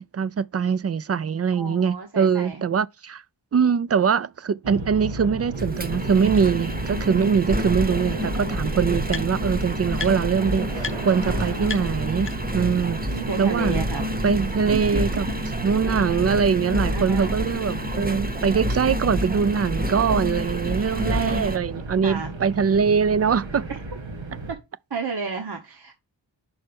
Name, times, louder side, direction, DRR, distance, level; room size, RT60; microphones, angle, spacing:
voice 1, 0.0-3.2 3.5-12.3 12.5-13.0 13.4-13.8 14.2-15.3 15.6-23.7, right 6 dB, 35° right, 0.4 m, -22 dB
voice 2, 1.6-2.6 12.6-14.1 14.7-15.0 16.9-17.3 20.3-20.5 20.9-21.5 22.0-22.3 24.5-24.6 24.9-26.0, right 4 dB, 60° right, 1.3 m, -32 dB
sound 1, 4.6-24.5, right 2 dB, 85° right, 1.6 m, -34 dB
Engine, 5.5-21.6, equal, 20° right, 1.0 m, -28 dB
sound 2, 5.6-5.7 6.3-6.4 7.7-7.8 8.1-9.6 9.9-10.4 10.8-11.0 11.3-11.4 11.7-12.7, left 5 dB, 25° left, 0.8 m, -35 dB
5.6 x 4.3 x 5.2 m
cardioid pair, 45°, 44 cm